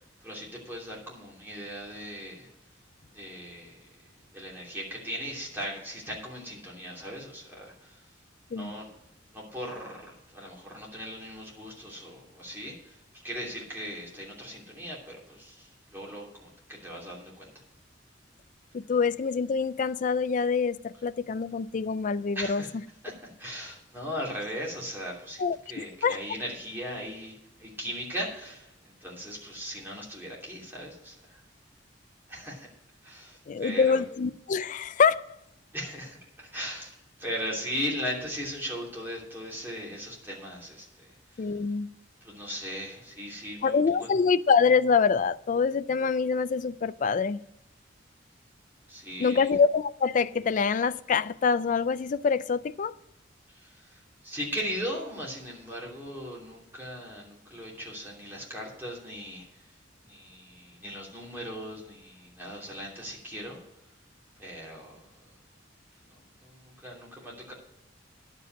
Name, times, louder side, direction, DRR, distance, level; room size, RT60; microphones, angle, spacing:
voice 1, 0.2-2.5 3.1-3.8 4.3-8.0 8.5-8.9 9.3-13.0 13.2-17.5 22.3-22.7 23.0-28.7 29.0-31.4 32.3-32.7 33.0-34.0 35.7-36.9 37.2-41.5 42.2-44.1 48.9-49.5 53.5-59.6 60.0-63.6 64.4-65.0 66.0-67.5, equal, 10° right, 2.9 m, -38 dB
voice 2, 18.7-22.6 25.4-26.2 33.5-35.2 41.4-41.9 43.6-47.4 49.2-52.9, left 5 dB, 45° left, 0.3 m, -25 dB
11.0 x 5.3 x 7.5 m
head